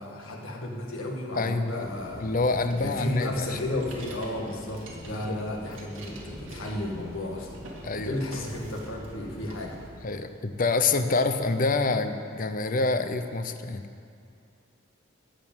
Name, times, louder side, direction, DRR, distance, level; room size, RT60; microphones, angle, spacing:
voice 1, 0.0-2.3 2.8-7.5 8.0-9.8, left 1 dB, 75° left, -1 dB, 1.8 m, -33 dB
voice 2, 1.3-1.9 2.2-3.6 5.2-5.4 7.8-8.2 10.0-13.8, left 3 dB, 40° left, 8 dB, 0.6 m, -27 dB
sound 1, 1.8-9.9, equal, 15° right, 1.6 m, -44 dB
sound 2, 2.7-5.3 5.6-7.3 7.5-7.9 8.3-9.2 9.5-10.3, right 2 dB, 65° right, 2.3 m, -48 dB
14.0 x 5.1 x 9.1 m, 2.4 s
head